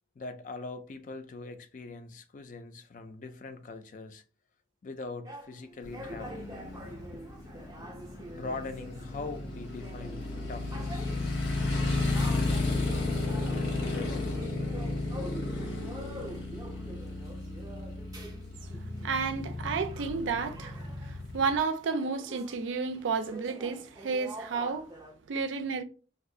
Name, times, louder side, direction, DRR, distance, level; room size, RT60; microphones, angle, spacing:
voice 1, 0.2-4.2 4.8-6.6 8.3-11.1 13.5-14.6, left 3 dB, 40° left, 0.3 m, -42 dB
sound 1, 5.2-21.3 21.5-25.1, right 1 dB, 20° right, 0.5 m, -46 dB
Motorcycle, 5.8-21.6, left 2 dB, 80° left, 0.9 m, -33 dB
voice 2, 19.0-20.8 21.3-24.9 25.3-25.8, right 5 dB, 85° right, 0.4 m, -31 dB
2.5 x 2.4 x 3.7 m
head